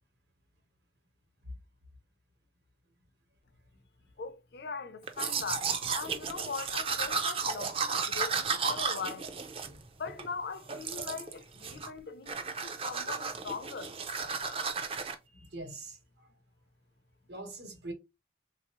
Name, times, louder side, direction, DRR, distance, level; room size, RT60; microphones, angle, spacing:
voice 1, 4.2-9.3 10.0-14.0, left 5 dB, 65° left, 0.5 m, -41 dB
Domestic sounds home sounds, 5.1-10.3 10.7-11.3 11.6-12.0 12.3-15.1, right 5 dB, 30° right, 0.4 m, -34 dB
voice 2, 15.3-16.3 17.3-17.9, right 2 dB, 70° right, 1.2 m, -44 dB
3.5 x 2.7 x 2.9 m
head